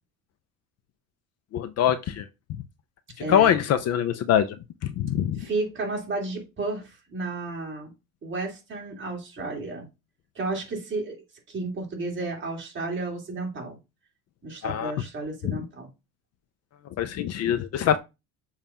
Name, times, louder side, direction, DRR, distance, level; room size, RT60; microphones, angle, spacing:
voice 1, 1.5-2.3 3.3-4.6 4.8-5.5 14.6-14.9 15.4-15.7 17.0-18.0, left 9 dB, 45° left, 0.5 m, -23 dB
voice 2, 3.2-3.5 5.4-7.9 8.2-9.9 10.3-11.2 11.5-13.8 14.4-15.9, right 3 dB, 35° right, 2.3 m, -32 dB
7.1 x 2.4 x 5.5 m
cardioid pair, 155°, 36 cm